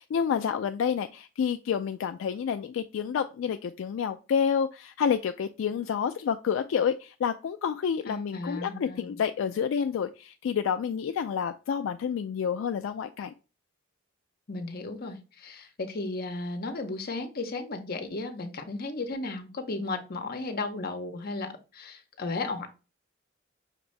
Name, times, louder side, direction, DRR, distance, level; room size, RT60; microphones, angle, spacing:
voice 1, 0.0-13.3, left 7 dB, 70° left, 0.3 m, -29 dB
voice 2, 8.1-9.2 14.5-22.7, left 3 dB, 50° left, 0.7 m, -35 dB
5.8 x 2.6 x 3.1 m
head